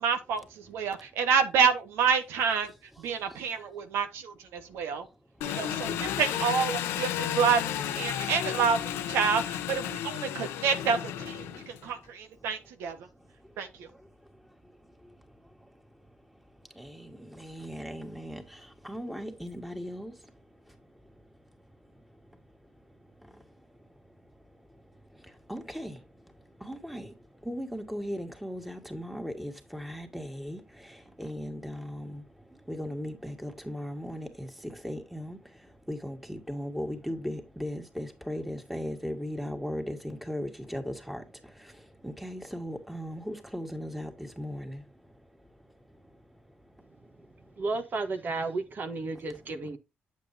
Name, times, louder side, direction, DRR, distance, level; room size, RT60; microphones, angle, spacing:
voice 1, 0.0-2.7 3.0-5.1 5.4-13.0 13.6-13.9, right 6 dB, 85° right, 1.2 m, -28 dB
Engine, 5.4-11.9, left 11 dB, 90° left, 0.7 m, -33 dB
voice 2, 16.8-20.1 25.5-26.0 26.6-27.1 27.4-30.6 30.9-32.2 32.7-35.4 35.9-41.2 42.0-44.8, equal, 5° right, 2.1 m, -37 dB
voice 3, 47.6-49.8, right 3 dB, 50° right, 1.3 m, -32 dB
8.3 x 7.3 x 2.7 m
supercardioid pair, 70°, 4 cm